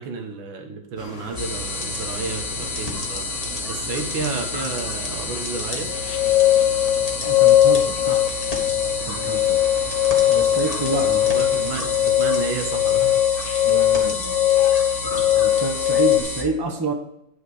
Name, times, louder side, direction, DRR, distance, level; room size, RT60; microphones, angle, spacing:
voice 1, 0.0-3.3 3.7-5.9 11.0-13.2 14.0-14.4, right 5 dB, 70° right, 4 dB, 1.9 m, -31 dB
sound 1, 1.0-12.1, left 2 dB, 40° left, 1.7 m, -40 dB
sound 2, 1.3-16.4, left 2 dB, 20° left, 1.5 m, -30 dB
sound 3, 5.9-16.2, left 13 dB, 75° left, 0.8 m, -20 dB
voice 2, 7.2-8.2 9.0-9.6 10.3-11.3 13.6-14.2 15.3-16.9, right 3 dB, 40° right, 2 dB, 0.3 m, -28 dB
10.0 x 5.0 x 4.8 m, 0.82 s
omnidirectional pair, 2.2 m